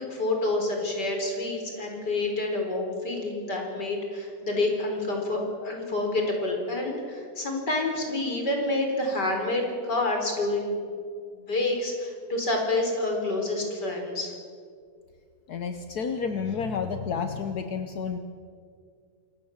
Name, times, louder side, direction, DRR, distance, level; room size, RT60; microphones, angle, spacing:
voice 1, 0.0-10.9 11.3-14.3, left 2 dB, 85° left, 2 dB, 5.1 m, -28 dB
voice 2, 15.5-18.2, left 6 dB, 70° left, 7 dB, 1.6 m, -30 dB
28.0 x 19.5 x 7.3 m, 2.2 s
omnidirectional pair, 1.8 m